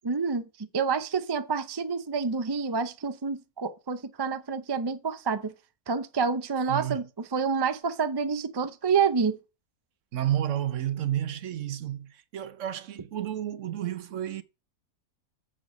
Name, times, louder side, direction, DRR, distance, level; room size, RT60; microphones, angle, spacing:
voice 1, 0.0-5.5 5.9-7.1 7.3-9.4, right 5 dB, 35° right, 0.3 m, -28 dB
voice 2, 6.7-7.0 10.1-14.4, right 11 dB, 65° right, 1.0 m, -31 dB
7.5 x 7.4 x 5.2 m
omnidirectional pair, 1.6 m